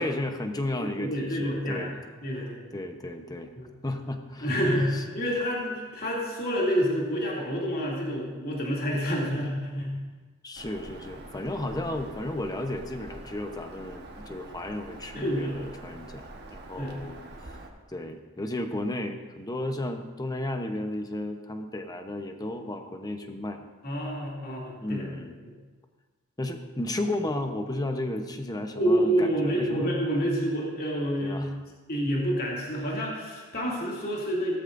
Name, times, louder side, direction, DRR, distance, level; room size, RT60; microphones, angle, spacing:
voice 1, 0.0-2.0 2.3-3.5 3.8-4.5 4.9-5.0 10.4-17.6 17.9-23.6 24.8-25.3 26.4-29.9 31.2-31.6, left 1 dB, 20° left, 5 dB, 0.9 m, -34 dB
voice 2, 1.0-1.9 2.2-2.7 3.6-3.7 4.4-10.0 15.1-15.7 16.8-16.9 23.8-25.1 28.7-31.5 31.9-34.6, equal, 45° left, -4 dB, 2.7 m, -28 dB
Bird vocalization bird call bird song, 10.6-17.7, right 2 dB, 50° right, 1.3 m, -45 dB
17.0 x 13.5 x 2.6 m, 1.3 s
head